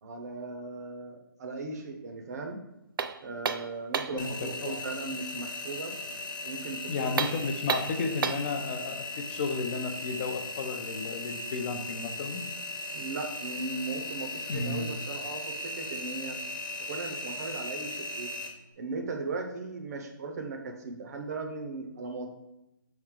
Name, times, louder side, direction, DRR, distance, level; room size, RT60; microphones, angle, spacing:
voice 1, 0.0-2.6 3.2-5.9 6.4-7.4 12.9-16.4 16.8-18.3 18.8-22.3, right 3 dB, 50° right, 3 dB, 0.7 m, -37 dB
sound 1, 3.0-4.3 7.1-8.5, right 6 dB, 75° right, 0.4 m, -31 dB
voice 2, 4.1-4.8 6.9-12.4 14.5-14.9, left 4 dB, 35° left, 6 dB, 0.5 m, -33 dB
Engine, 4.2-18.5, left 2 dB, 60° left, 1.1 m, -38 dB
4.7 x 3.2 x 3.6 m, 0.90 s
hypercardioid pair, 155°, 12 cm